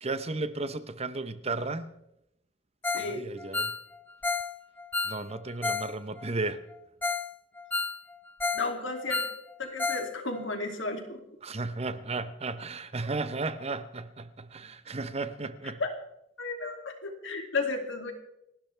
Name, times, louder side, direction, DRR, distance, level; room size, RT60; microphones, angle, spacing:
voice 1, 0.0-1.9 2.9-3.7 5.1-6.6 11.4-15.8, right 3 dB, 35° right, 0.9 m, -34 dB
Ringtone, 2.8-3.1 3.4-5.9 6.2-6.3 6.7-6.8 7.0-7.3 7.6-8.7 9.0-10.1 10.3-10.4 10.9-11.0, left 3 dB, 10° left, 0.5 m, -31 dB
voice 2, 2.9-3.2 8.5-9.2 9.6-11.2 15.8-15.9 16.4-18.1, left 3 dB, 85° left, 2.7 m, -33 dB
29.5 x 12.5 x 3.4 m
head